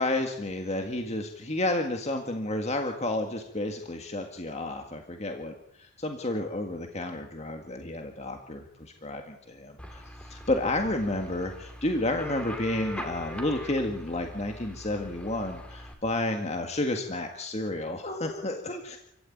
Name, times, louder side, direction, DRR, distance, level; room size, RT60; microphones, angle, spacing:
voice 1, 0.0-19.0, left 1 dB, 30° left, 4 dB, 1.8 m, -31 dB
sound 1, 9.8-15.9, equal, 5° left, 3.0 m, -41 dB
27.5 x 16.0 x 9.3 m, 0.82 s
head